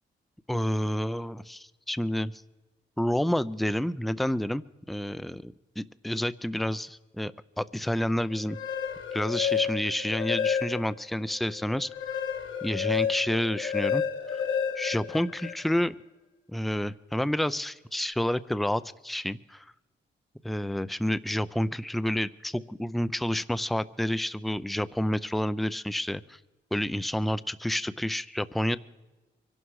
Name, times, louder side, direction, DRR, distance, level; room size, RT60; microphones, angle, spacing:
voice 1, 0.5-2.3 3.0-8.6 9.1-11.9 12.6-14.0 14.7-16.0 16.5-19.7 20.4-26.4 26.7-28.8, left 1 dB, ahead, 15 dB, 0.5 m, -29 dB
sound 1, 8.4-11.1 11.5-15.8, left 7 dB, 90° left, 1.7 m, -30 dB
24.5 x 11.5 x 4.8 m, 1.1 s
cardioid pair, 70°, 20 cm